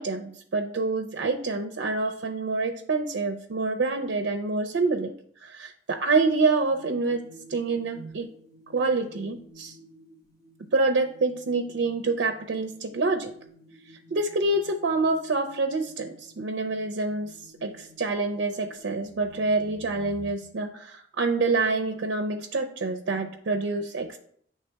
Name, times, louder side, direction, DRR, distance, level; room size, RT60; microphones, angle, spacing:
voice 1, 0.0-5.1 5.4-7.2 7.5-8.3 8.7-9.8 10.7-13.3 14.1-17.3 17.6-24.2, right 3 dB, 70° right, 5 dB, 0.5 m, -27 dB
sound 1, 6.1-20.3, equal, 20° left, 2.0 m, -52 dB
8.7 x 3.3 x 3.4 m, 0.62 s
head